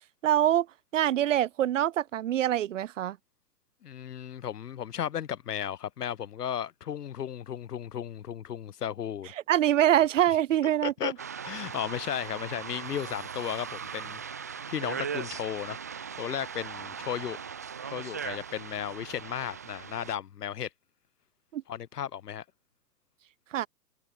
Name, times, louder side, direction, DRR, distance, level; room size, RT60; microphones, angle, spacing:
voice 1, 0.2-0.7 0.9-3.2 9.5-11.1 21.5-21.6 23.5-23.7, right 12 dB, 50° right, 0.9 m, -24 dB
voice 2, 3.8-9.3 10.8-11.1 11.4-14.4 14.7-15.8 16.2-17.4 17.8-20.7 21.7-22.4, left 9 dB, 65° left, 1.7 m, -35 dB
sound 1, 11.2-20.1, right 7 dB, 10° right, 0.5 m, -39 dB
hypercardioid pair, 150°, 50 cm